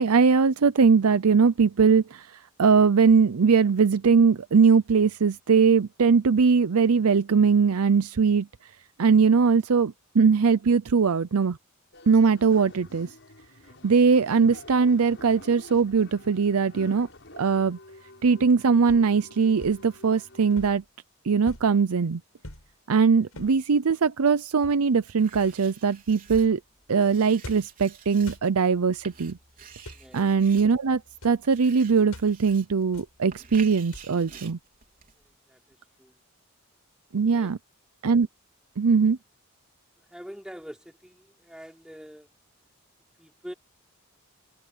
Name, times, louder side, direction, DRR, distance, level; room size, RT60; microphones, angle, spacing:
voice 1, 0.0-8.7 9.0-11.6 12.1-13.1 13.8-17.1 17.4-17.8 18.2-20.8 21.2-22.2 22.9-26.6 26.9-29.4 30.1-34.6 37.1-37.6 38.0-38.3 38.8-39.2, right 5 dB, 80° right, 0.6 m, -21 dB
sound 1, 11.9-20.7, left 2 dB, 55° left, 7.0 m, -48 dB
sound 2, 16.9-17.4 18.9-19.1 19.6-19.9 20.5-20.9 21.5-21.8 22.4-22.7 23.3-23.6 24.6-24.9 25.3-25.6 26.3-26.6 27.4-27.8 28.2-28.5 29.7-30.1 30.6-30.7 31.1-31.4 32.1-32.3 32.9-33.2 33.9-34.3, left 1 dB, 80° left, 6.7 m, -44 dB
Writing, 25.2-35.3, right 6 dB, 40° right, 4.3 m, -50 dB
voice 2, 35.2-36.2 37.3-37.5 40.0-42.3 43.2-43.5, equal, 5° right, 3.4 m, -45 dB
head